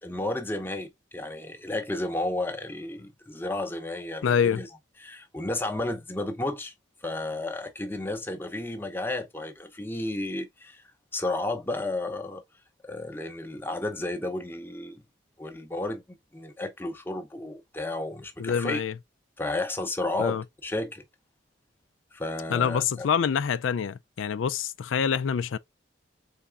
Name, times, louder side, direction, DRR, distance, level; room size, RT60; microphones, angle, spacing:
voice 1, 0.0-4.7 5.0-6.7 7.0-10.8 11.1-12.4 12.8-15.0 15.4-16.0 16.3-18.8 19.4-21.0 22.1-23.1, left 2 dB, 10° left, 0.7 m, -32 dB
voice 2, 4.2-4.6 18.4-19.0 20.2-20.4 22.5-25.6, left 7 dB, 90° left, 0.4 m, -26 dB
4.2 x 3.5 x 3.4 m
head